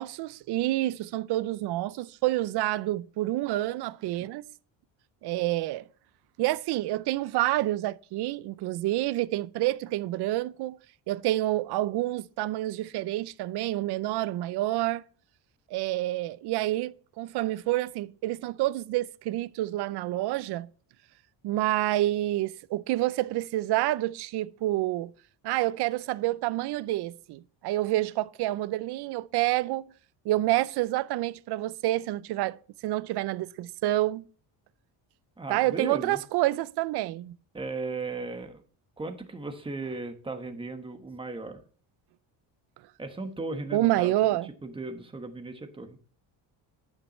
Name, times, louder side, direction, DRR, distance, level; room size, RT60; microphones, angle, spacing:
voice 1, 0.0-4.4 5.2-5.9 6.4-10.8 11.1-15.0 15.7-20.7 21.4-25.1 25.4-29.9 30.2-32.6 32.8-34.3 35.5-37.4 43.7-44.5, right 16 dB, 60° right, 0.6 m, -28 dB
voice 2, 35.4-36.2 37.5-38.6 39.0-41.6 43.0-44.1 44.6-46.0, right 3 dB, 10° right, 1.2 m, -36 dB
10.0 x 8.7 x 3.1 m
cardioid pair, 135°, 45 cm